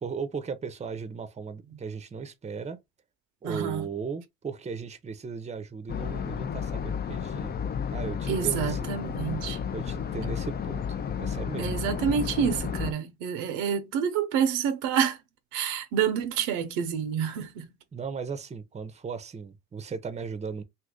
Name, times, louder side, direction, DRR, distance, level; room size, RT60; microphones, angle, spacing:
voice 1, 0.0-2.8 3.4-7.5 7.9-8.8 9.7-10.8 11.2-11.7 17.9-20.6, right 5 dB, 20° right, 0.6 m, -36 dB
voice 2, 3.4-3.9 8.3-9.6 11.6-15.2 15.5-17.7, right 8 dB, 80° right, 0.7 m, -28 dB
sound 1, 5.9-12.9, left 7 dB, 30° left, 0.5 m, -32 dB
2.7 x 2.5 x 3.5 m
supercardioid pair, 75°, 32 cm